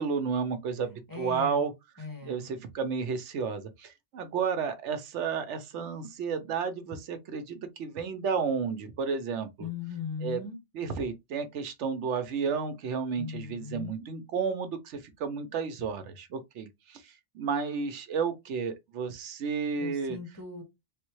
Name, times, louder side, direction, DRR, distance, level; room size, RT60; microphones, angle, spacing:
voice 1, 0.0-9.7 10.2-10.4 10.7-20.2, right 6 dB, 80° right, 0.9 m, -32 dB
voice 2, 1.1-1.6 2.0-2.5 9.6-10.6 13.1-13.9 19.8-20.6, left 6 dB, 20° left, 1.0 m, -38 dB
3.5 x 2.1 x 3.0 m
omnidirectional pair, 1.2 m